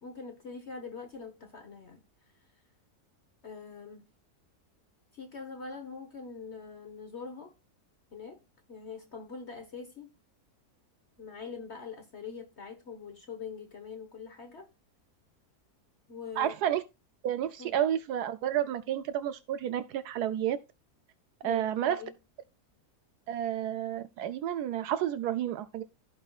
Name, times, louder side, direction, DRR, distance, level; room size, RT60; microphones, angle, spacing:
voice 1, 0.0-2.0 3.4-4.0 5.1-7.5 8.1-8.4 8.7-10.1 11.2-14.7 16.1-16.5 17.6-17.7 21.4-22.1, left 5 dB, 45° left, 1.4 m, -43 dB
voice 2, 16.4-16.8 17.2-20.6 21.4-22.0 23.3-25.8, right 11 dB, 85° right, 1.2 m, -30 dB
15.5 x 5.5 x 2.4 m
omnidirectional pair, 1.7 m